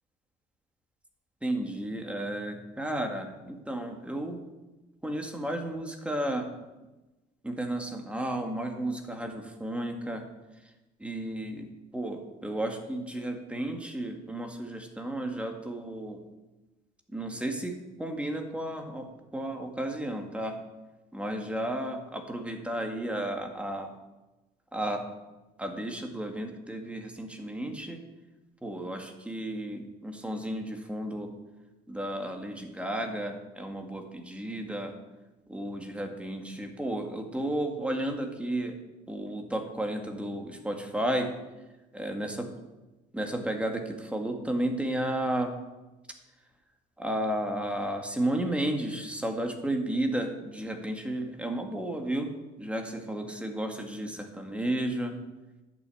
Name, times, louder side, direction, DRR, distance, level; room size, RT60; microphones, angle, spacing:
voice 1, 1.4-4.4 5.0-6.5 7.4-10.2 11.0-16.2 17.1-20.6 21.1-23.9 24.7-25.0 25.6-28.0 28.6-31.3 31.9-34.9 35.5-38.8 39.1-41.3 41.9-42.5 43.1-45.5 47.0-52.3 52.6-55.1, right 1 dB, 5° right, 3 dB, 1.8 m, -33 dB
10.5 x 6.1 x 8.4 m, 1.1 s
cardioid pair, 110°, 17 cm